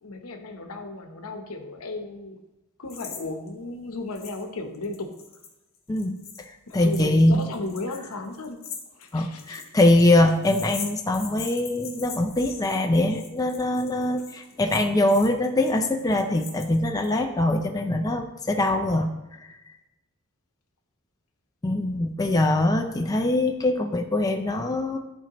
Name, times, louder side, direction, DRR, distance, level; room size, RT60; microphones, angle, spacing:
voice 1, 0.0-2.4 2.8-5.2 6.7-8.6 8.9-9.7, left 2 dB, 75° left, 5 dB, 0.9 m, -35 dB
sound 1, 2.9-3.2 3.5-3.6 4.1-4.4 4.7-17.1, left 6 dB, 45° left, 1.7 m, -41 dB
voice 2, 6.4-7.5 9.1-19.6 21.6-25.0, left 1 dB, 15° left, 3 dB, 0.4 m, -23 dB
13.0 x 4.5 x 3.0 m, 0.99 s
head